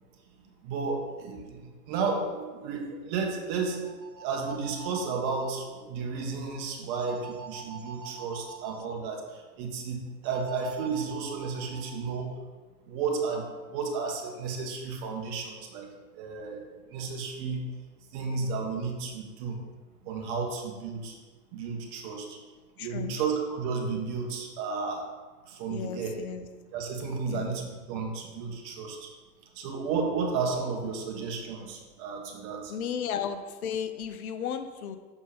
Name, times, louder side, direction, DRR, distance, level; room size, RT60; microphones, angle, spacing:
voice 1, 0.6-3.8 4.2-12.3 12.9-13.4 13.7-15.9 16.2-16.6 16.9-17.6 18.1-19.6 20.0-21.1 21.5-22.4 22.8-25.0 25.5-26.1 26.7-29.1 29.5-32.7, right 4 dB, 35° right, 1 dB, 1.5 m, -32 dB
sound 1, 3.6-5.6 6.8-8.8 10.2-12.2, right 6 dB, 90° right, 1.3 m, -45 dB
voice 2, 22.8-23.2 25.7-26.5 27.3-27.5 32.7-35.0, left 8 dB, 60° left, 9 dB, 0.7 m, -34 dB
7.3 x 4.5 x 5.1 m, 1.4 s
hypercardioid pair, 120°, 50 cm